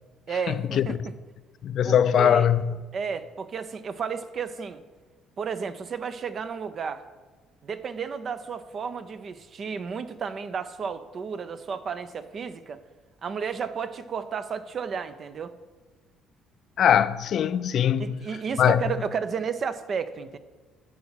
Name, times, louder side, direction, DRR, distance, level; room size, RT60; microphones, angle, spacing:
voice 1, 0.3-1.1 1.8-2.5 2.9-4.8 5.4-7.0 7.6-12.8 13.2-15.5 18.0-20.4, right 6 dB, 50° right, 0.6 m, -32 dB
voice 2, 1.6-2.7 16.8-18.1 18.6-18.8, left 9 dB, 60° left, 0.4 m, -21 dB
10.5 x 4.3 x 5.8 m
supercardioid pair, 70°, 0 cm